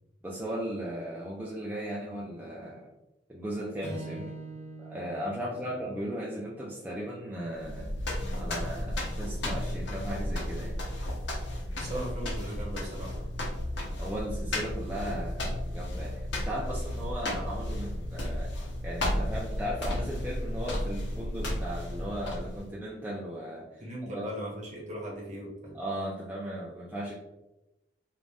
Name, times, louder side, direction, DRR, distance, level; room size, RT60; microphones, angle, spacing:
voice 1, 0.2-2.9 3.3-4.3 4.8-7.9 8.4-10.8 11.9-12.0 14.0-18.5 18.8-24.3 25.7-27.1, equal, 10° right, -5 dB, 0.3 m, -37 dB
Strum, 3.8-8.2, right 2 dB, 15° left, 0.7 m, -45 dB
voice 2, 5.4-5.9 11.7-13.3 23.8-25.8, right 1 dB, 40° right, -3 dB, 1.0 m, -39 dB
sound 1, 7.6-22.7, left 1 dB, 70° left, 0.6 m, -33 dB
2.5 x 2.1 x 3.3 m, 0.97 s
head